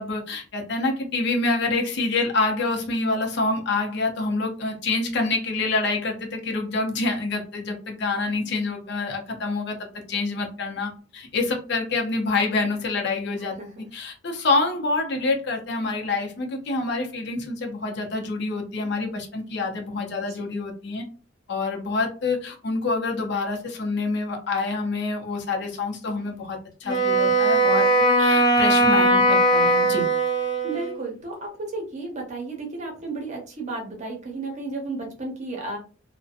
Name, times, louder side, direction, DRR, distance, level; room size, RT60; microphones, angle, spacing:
voice 1, 0.0-9.8 10.1-13.6 13.9-21.0 21.5-27.9 28.2-30.1, left 3 dB, 65° left, 2 dB, 0.6 m, -27 dB
voice 2, 13.3-13.9 20.2-20.3 30.6-35.8, right 2 dB, 40° right, 0 dB, 0.8 m, -33 dB
Wind instrument woodwind instrument, 26.9-31.0, right 1 dB, 25° left, 0.5 m, -19 dB
2.6 x 2.1 x 2.4 m, 0.36 s
head